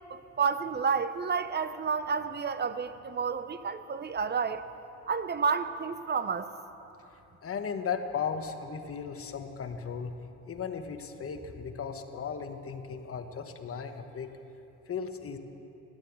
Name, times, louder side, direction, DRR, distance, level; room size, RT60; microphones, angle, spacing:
voice 1, 0.1-4.7 5.1-6.5, right 6 dB, 35° right, 12 dB, 0.7 m, -30 dB
voice 2, 7.4-10.2 10.5-14.3 14.9-15.4, left 6 dB, 50° left, 7 dB, 1.2 m, -36 dB
14.0 x 12.0 x 7.3 m, 3.0 s
cardioid pair, 90°, 30 cm